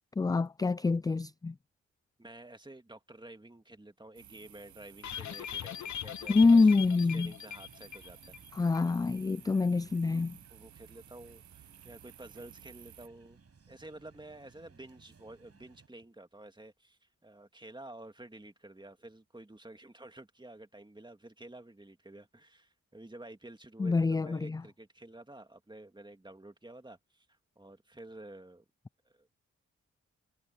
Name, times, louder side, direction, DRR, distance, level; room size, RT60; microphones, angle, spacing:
voice 1, 0.2-1.6 6.3-7.3 8.5-10.4 23.8-24.6, left 3 dB, 15° left, 0.3 m, -26 dB
voice 2, 2.2-6.7 7.1-8.4 10.5-13.4 13.7-27.3 27.6-28.6 29.1-29.4, right 2 dB, 15° right, 2.4 m, -51 dB
sound 1, 4.1-13.1, right 10 dB, 75° right, 0.8 m, -56 dB
sound 2, 5.0-8.5 8.7-8.8 9.2-9.3, left 9 dB, 70° left, 0.9 m, -41 dB
sound 3, 7.5-15.9, right 5 dB, 55° right, 6.7 m, -61 dB
cardioid pair, 50°, 29 cm